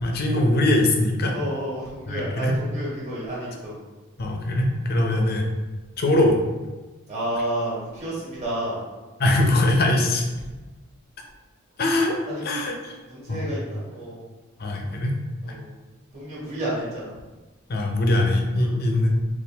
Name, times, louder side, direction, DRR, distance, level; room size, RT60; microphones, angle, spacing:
voice 1, 0.0-1.3 2.1-2.6 4.2-5.4 6.0-6.4 9.2-10.2 11.8-12.2 12.4-13.0 13.3-13.5 14.6-15.1 17.7-19.1, left 1 dB, 45° left, 2 dB, 0.6 m, -21 dB
voice 2, 1.3-3.7 5.0-5.2 7.1-8.8 12.3-12.4 13.0-14.3 15.4-15.7 16.1-17.1 18.6-18.8, right 1 dB, 30° right, -8 dB, 1.4 m, -31 dB
4.3 x 2.5 x 3.4 m, 1.2 s
head